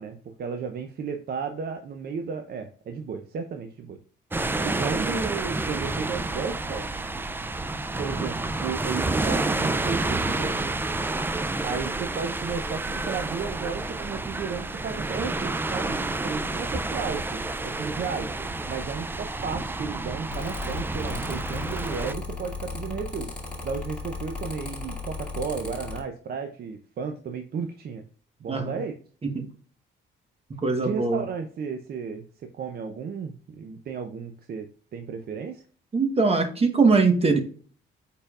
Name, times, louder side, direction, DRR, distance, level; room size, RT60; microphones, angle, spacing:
voice 1, 0.0-4.0 4.6-6.9 8.0-10.7 11.6-18.4 18.7-23.3 23.6-28.0 28.4-28.9 30.8-32.2 32.5-35.6, right 6 dB, 50° right, 6 dB, 0.6 m, -33 dB
sound 1, 4.3-22.1, right 2 dB, 10° right, 0.3 m, -29 dB
Mechanical fan, 20.3-26.0, left 3 dB, 5° left, 1.8 m, -36 dB
voice 2, 28.5-28.8 29.2-29.4 30.6-31.2 35.9-37.4, right 4 dB, 30° right, 5 dB, 1.1 m, -22 dB
5.1 x 4.4 x 2.4 m, 0.42 s
cardioid pair, 90°, 20 cm